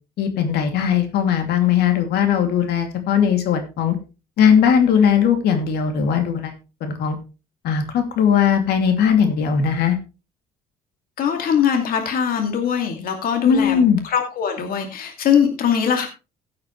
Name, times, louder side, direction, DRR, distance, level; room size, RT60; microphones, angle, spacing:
voice 1, 0.2-4.0 4.4-6.5 6.8-7.2 7.6-10.0 13.4-14.0, left 7 dB, 75° left, 5 dB, 2.6 m, -18 dB
voice 2, 11.2-16.1, left 8 dB, 60° left, 4 dB, 2.4 m, -21 dB
15.5 x 8.6 x 3.2 m, 0.30 s
cardioid pair, 110°, 17 cm